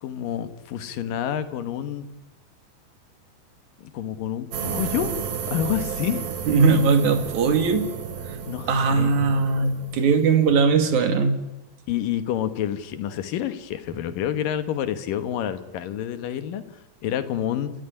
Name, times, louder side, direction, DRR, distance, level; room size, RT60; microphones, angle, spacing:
voice 1, 0.0-2.1 3.8-5.2 5.5-6.2 8.5-9.1 11.9-16.6 17.0-17.7, left 10 dB, 70° left, 11 dB, 2.9 m, -28 dB
sound 1, 4.5-10.6, right 7 dB, 70° right, 3.8 m, -32 dB
voice 2, 6.5-7.9 8.7-11.4, right 5 dB, 55° right, 8 dB, 3.3 m, -20 dB
29.0 x 15.5 x 9.9 m, 0.98 s
omnidirectional pair, 4.2 m